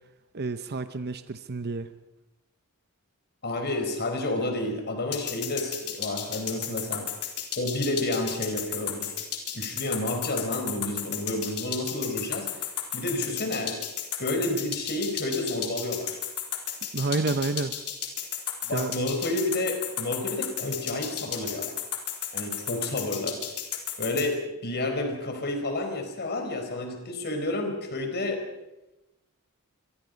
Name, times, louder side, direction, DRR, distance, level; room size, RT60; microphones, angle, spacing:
voice 1, 0.3-1.9 16.9-17.8 18.7-18.9, right 3 dB, 45° right, 10 dB, 0.8 m, -29 dB
voice 2, 3.4-7.1 7.6-9.1 9.5-12.7 12.9-13.8 14.2-16.2 18.6-21.8 22.3-23.4 24.0-28.4, left 1 dB, 50° left, 5 dB, 4.6 m, -30 dB
sound 1, 5.1-24.3, left 11 dB, 90° left, 3.9 m, -33 dB
27.0 x 22.5 x 5.3 m, 0.98 s
head